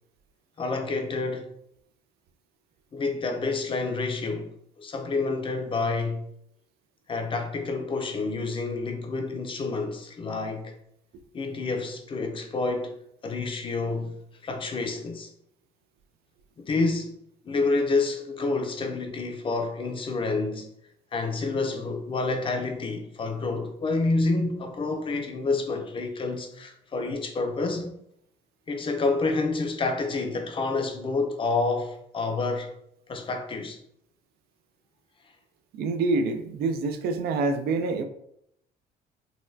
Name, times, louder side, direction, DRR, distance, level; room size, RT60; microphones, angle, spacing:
voice 1, 0.6-1.5 2.9-6.2 7.1-10.7 11.3-12.9 13.2-14.2 14.4-15.3 16.7-17.1 17.4-20.7 21.1-28.0 28.7-32.7 33.1-33.8, left 3 dB, 30° left, 0.5 m, -28 dB
voice 2, 35.7-38.0, right 3 dB, 70° right, 0.4 m, -26 dB
4.0 x 2.2 x 2.6 m
cardioid pair, 110°, 17 cm